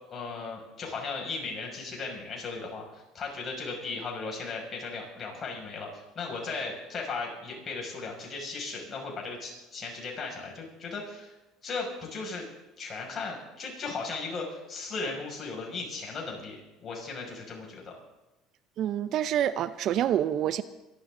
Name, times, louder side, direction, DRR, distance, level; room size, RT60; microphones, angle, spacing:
voice 1, 0.1-5.9 6.1-11.3 11.6-12.5 12.8-17.9, left 4 dB, 40° left, 6.3 m, -36 dB
voice 2, 18.8-20.6, right 11 dB, 55° right, 0.7 m, -27 dB
26.0 x 12.0 x 3.9 m
hypercardioid pair, 80°, 0 cm